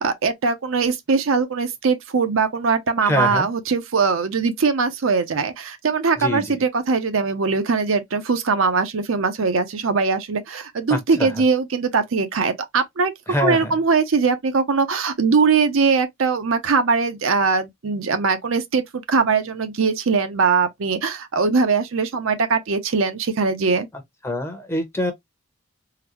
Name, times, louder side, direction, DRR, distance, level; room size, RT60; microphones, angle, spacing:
voice 1, 0.0-13.1 13.4-23.9, right 4 dB, 75° right, 0.6 m, -21 dB
voice 2, 3.0-3.5 6.2-6.6 10.9-11.3 13.3-13.8 24.2-25.1, left 1 dB, 10° left, 0.7 m, -24 dB
3.8 x 2.1 x 2.9 m
head